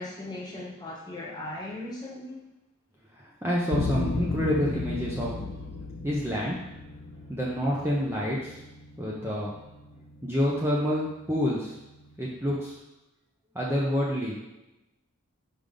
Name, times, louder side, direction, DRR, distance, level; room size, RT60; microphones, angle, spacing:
voice 1, 0.0-2.4, left 1 dB, 20° left, -3 dB, 1.1 m, -38 dB
voice 2, 3.1-5.5 6.0-6.6 7.3-8.6 9.0-9.6 10.2-11.8 12.2-12.8 13.5-14.4, equal, 10° right, -5 dB, 0.7 m, -28 dB
sound 1, 3.7-12.8, left 3 dB, 55° left, 0.5 m, -36 dB
5.3 x 5.1 x 3.8 m, 0.95 s
head